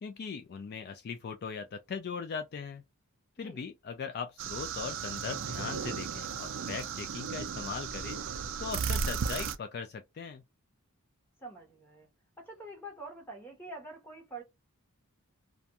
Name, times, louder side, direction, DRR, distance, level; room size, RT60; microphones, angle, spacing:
voice 1, 0.0-2.8 3.4-10.4, left 5 dB, 45° left, 0.3 m, -39 dB
sound 1, 4.4-9.6, right 6 dB, 60° right, 0.4 m, -35 dB
voice 2, 11.4-12.1 12.4-14.4, right 2 dB, 10° left, 1.1 m, -46 dB
2.5 x 2.2 x 2.7 m
head